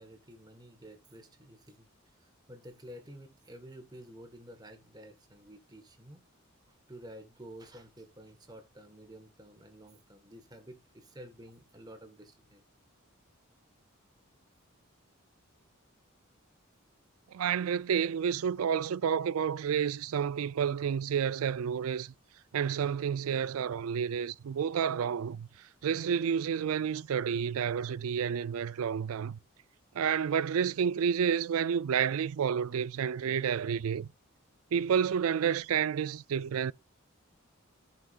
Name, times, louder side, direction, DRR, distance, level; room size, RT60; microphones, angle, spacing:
voice 1, 0.0-6.2 6.7-12.6, equal, 20° right, 1.5 m, -51 dB
voice 2, 17.3-22.1 22.5-25.5 25.8-29.4 29.9-34.1 34.7-36.7, right 7 dB, 85° right, 0.4 m, -30 dB
14.0 x 6.0 x 2.4 m
head